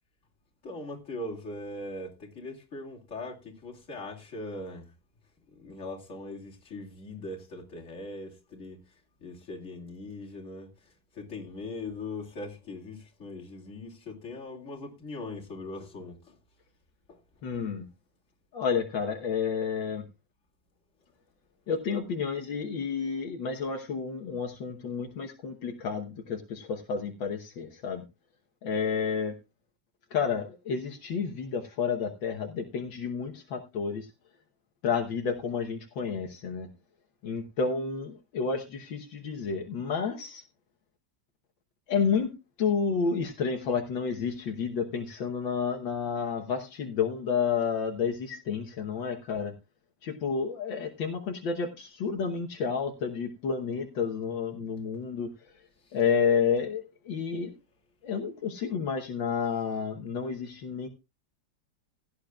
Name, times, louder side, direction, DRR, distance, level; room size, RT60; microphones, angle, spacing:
voice 1, 0.6-4.9 5.5-8.8 9.2-10.7 11.1-16.3 17.1-17.2, left 2 dB, 40° left, 2.9 m, -40 dB
voice 2, 17.4-17.9 18.5-20.0 21.7-28.0 28.6-29.3 30.1-34.1 34.8-36.7 37.2-40.4 41.9-49.5 50.0-55.3 55.9-57.5 58.0-60.9, left 6 dB, 75° left, 1.9 m, -30 dB
16.5 x 10.5 x 2.4 m
omnidirectional pair, 2.1 m